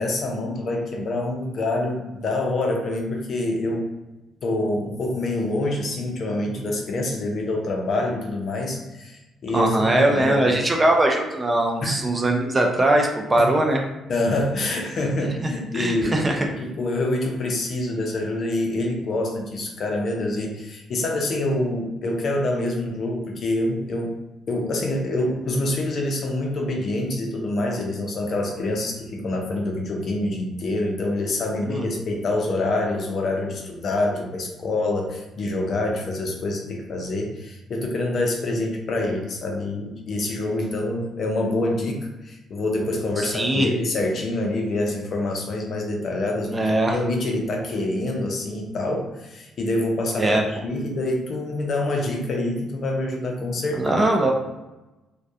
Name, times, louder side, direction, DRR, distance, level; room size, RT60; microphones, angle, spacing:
voice 1, 0.0-3.9 4.4-10.6 11.8-12.0 13.4-13.5 14.1-24.2 24.5-54.0, left 2 dB, 50° left, 1 dB, 0.5 m, -26 dB
voice 2, 9.5-13.9 15.4-16.5 31.6-31.8 43.3-43.7 46.5-47.0 50.2-50.4 53.8-54.3, right 1 dB, 20° right, 1 dB, 0.4 m, -21 dB
2.2 x 2.2 x 2.7 m, 1.0 s
cardioid pair, 110°, 0 cm